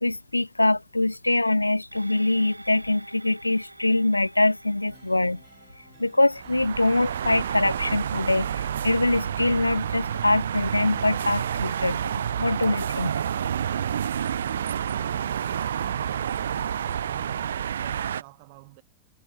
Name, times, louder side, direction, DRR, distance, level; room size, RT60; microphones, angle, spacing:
voice 1, 0.0-5.4 6.0-13.1, left 2 dB, 85° left, 0.4 m, -24 dB
sound 1, 1.9-10.6 11.0-11.1, right 1 dB, 85° right, 0.8 m, -50 dB
sound 2, 4.8-17.5, right 3 dB, 10° right, 3.7 m, -53 dB
sound 3, 6.3-18.2, right 9 dB, 65° right, 0.4 m, -29 dB
voice 2, 15.2-16.7 17.0-18.8, right 27 dB, 50° right, 1.4 m, -48 dB
figure-of-eight pair, 90°, 0 cm